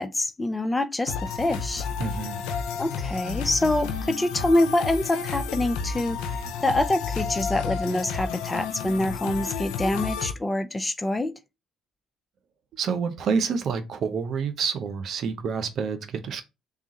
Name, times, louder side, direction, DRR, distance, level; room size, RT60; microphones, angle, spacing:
voice 1, 0.0-1.9 2.8-11.3, left 1 dB, 15° left, 0.5 m, -26 dB
sound 1, 1.1-10.3, left 6 dB, 85° left, 0.5 m, -31 dB
voice 2, 2.0-2.4 12.8-16.4, right 6 dB, 60° right, 0.6 m, -28 dB
3.6 x 2.4 x 4.1 m
supercardioid pair, 75°, 0 cm